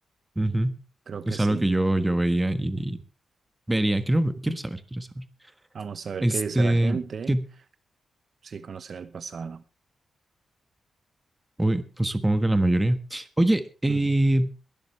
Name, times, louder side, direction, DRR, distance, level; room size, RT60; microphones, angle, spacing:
voice 1, 0.3-0.8 1.3-3.0 3.7-5.3 6.2-7.0 7.3-7.4 11.6-14.5, right 1 dB, 10° right, 1.4 m, -24 dB
voice 2, 1.1-1.7 5.7-7.4 8.4-9.6 13.9-14.1, right 6 dB, 50° right, 0.9 m, -34 dB
22.0 x 12.0 x 3.2 m
wide cardioid pair, 140°, 0 cm